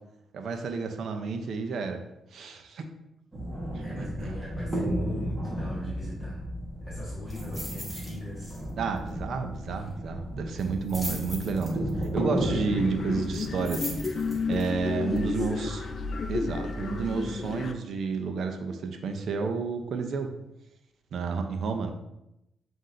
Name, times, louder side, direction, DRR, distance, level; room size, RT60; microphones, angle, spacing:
voice 1, 0.3-2.0 2.3-2.9 3.7-4.3 8.8-15.8 16.3-20.3 21.1-21.9, right 4 dB, 65° right, 5 dB, 0.5 m, -31 dB
sound 1, 3.3-15.3, right 1 dB, 20° right, 1.2 m, -34 dB
voice 2, 3.8-6.4 6.8-8.6 9.7-9.8 14.9-15.7, left 1 dB, 15° left, -8 dB, 1.4 m, -41 dB
sound 2, 7.3-8.1 8.4-8.7 9.0-9.1 10.6-12.0 13.3-14.6 15.2-15.3, equal, ahead, 1.4 m, -39 dB
sound 3, 12.4-17.7, left 4 dB, 50° left, 0.4 m, -32 dB
7.3 x 2.6 x 2.6 m, 0.87 s
cardioid pair, 95°, 0 cm